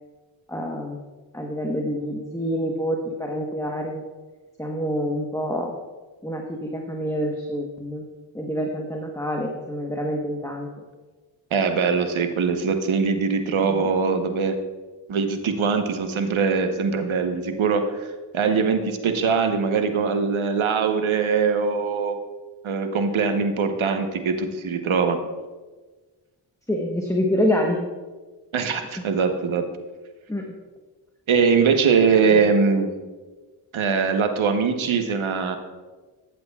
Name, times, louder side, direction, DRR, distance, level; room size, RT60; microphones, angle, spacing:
voice 1, 0.5-1.0 1.3-4.0 4.6-5.7 6.2-8.0 8.3-10.8 13.6-13.9 26.7-27.8 29.0-29.1 30.3-30.5 32.3-32.4, equal, 5° left, 1 dB, 1.1 m, -27 dB
voice 2, 11.5-14.6 15.1-18.1 18.3-22.2 22.6-25.2 28.5-29.7 31.3-32.9 33.7-35.6, right 5 dB, 70° right, 7 dB, 1.1 m, -22 dB
14.5 x 7.8 x 2.4 m, 1.3 s
cardioid pair, 45°, 49 cm